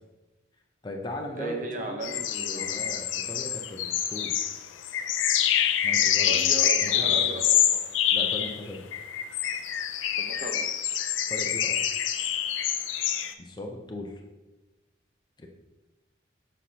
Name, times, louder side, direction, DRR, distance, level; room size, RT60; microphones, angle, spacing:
voice 1, 0.8-4.6 5.8-6.5 6.8-7.4 8.1-8.9 11.3-11.8 13.4-14.2 15.4-15.5, left 1 dB, 25° left, 2 dB, 0.5 m, -38 dB
voice 2, 1.3-2.9 6.0-7.9 10.1-10.7, right 2 dB, 45° right, 3 dB, 0.7 m, -37 dB
sound 1, 2.0-13.3, left 10 dB, 85° left, 0.4 m, -26 dB
6.2 x 5.8 x 2.8 m, 1.1 s
head